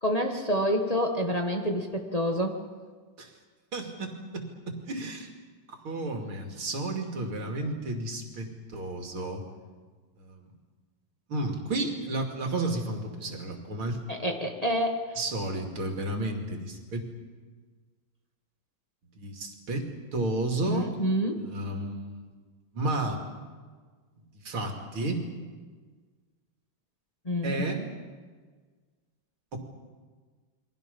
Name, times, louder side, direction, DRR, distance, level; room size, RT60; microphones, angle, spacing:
voice 1, 0.0-2.6 14.1-15.0 20.7-21.5 27.2-27.9, equal, 20° left, 2 dB, 1.5 m, -28 dB
voice 2, 3.7-5.3 5.7-9.4 10.2-10.5 11.3-14.0 15.2-17.0 19.2-20.9 21.4-22.2 22.7-23.2 24.5-25.2 27.4-27.8 29.5-29.6, right 2 dB, 85° right, 2 dB, 3.5 m, -32 dB
29.5 x 23.0 x 5.5 m, 1.5 s
omnidirectional pair, 2.2 m